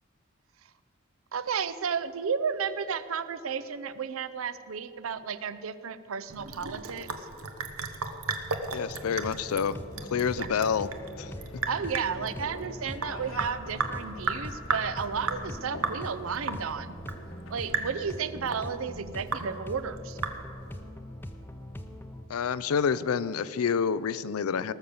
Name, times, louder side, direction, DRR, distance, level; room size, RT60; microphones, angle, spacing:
voice 1, 1.3-7.3 10.4-10.5 11.7-16.9 17.5-20.2, right 6 dB, 75° right, 14 dB, 0.6 m, -33 dB
Sink (filling or washing) / Drip, 6.3-20.8, right 4 dB, 90° right, 1.1 m, -35 dB
voice 2, 8.7-9.8 10.1-10.9 11.2-11.3 22.3-24.7, left 6 dB, 90° left, 17 dB, 0.5 m, -28 dB
sound 1, 8.9-22.2, equal, 10° left, 0.6 m, -42 dB
sound 2, 9.6-18.0, left 2 dB, 65° left, 1.2 m, -49 dB
18.5 x 6.7 x 7.0 m, 2.5 s
head